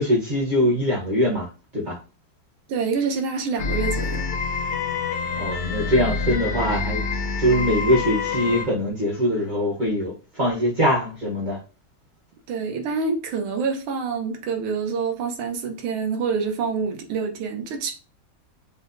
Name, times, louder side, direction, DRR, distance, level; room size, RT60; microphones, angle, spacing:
voice 1, 0.0-2.0 5.3-7.0 7.4-11.6, equal, 45° right, 0.6 m, -22 dB
voice 2, 2.7-4.3 12.5-17.9, right 5 dB, 85° right, 1.6 m, -26 dB
sound 1, 3.6-8.7, left 5 dB, 75° left, 1.0 m, -27 dB
5.1 x 2.0 x 2.5 m
omnidirectional pair, 2.3 m